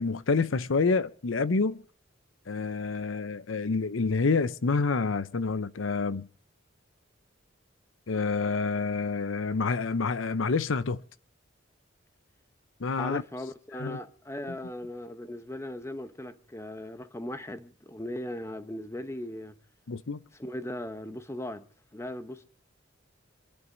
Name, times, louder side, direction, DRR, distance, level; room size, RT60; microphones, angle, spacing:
voice 1, 0.0-1.8 2.5-6.3 8.1-11.0 12.8-13.2 13.8-14.0 19.9-20.2, left 4 dB, 85° left, 0.7 m, -28 dB
voice 2, 13.0-19.5 20.4-21.6 21.9-22.4, left 1 dB, 15° left, 1.0 m, -38 dB
26.5 x 11.0 x 3.9 m
head